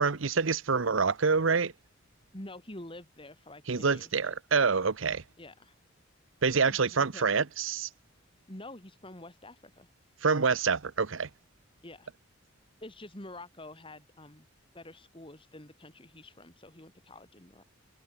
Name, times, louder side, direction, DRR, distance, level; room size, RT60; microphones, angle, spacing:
voice 1, 0.0-1.7 3.7-5.2 6.4-7.9 10.2-11.3, right 5 dB, 75° right, 0.9 m, -26 dB
voice 2, 2.3-4.3 5.4-5.8 6.7-7.3 8.5-9.9 11.8-12.1 12.8-14.5 14.7-17.6, left 1 dB, 25° left, 3.8 m, -47 dB
head